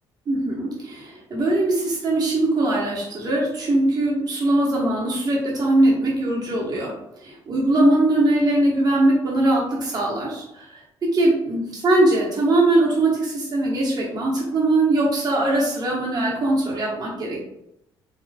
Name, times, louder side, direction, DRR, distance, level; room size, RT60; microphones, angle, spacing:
voice 1, 0.3-6.9 7.2-10.7 11.1-17.4, right 2 dB, 45° right, -4 dB, 1.1 m, -21 dB
3.3 x 2.3 x 2.3 m, 0.81 s
cardioid pair, 90°, 10 cm